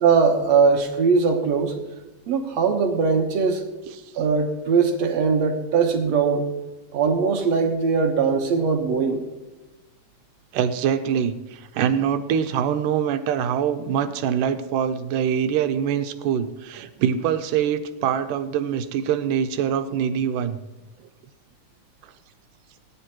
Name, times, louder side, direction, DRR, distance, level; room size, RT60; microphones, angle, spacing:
voice 1, 0.0-1.8 2.3-3.6 4.2-6.5 6.9-9.3, right 5 dB, 60° right, 4 dB, 2.1 m, -20 dB
voice 2, 10.5-20.6, right 8 dB, 80° right, 9 dB, 2.3 m, -24 dB
18.5 x 10.0 x 3.1 m, 1.1 s
omnidirectional pair, 3.8 m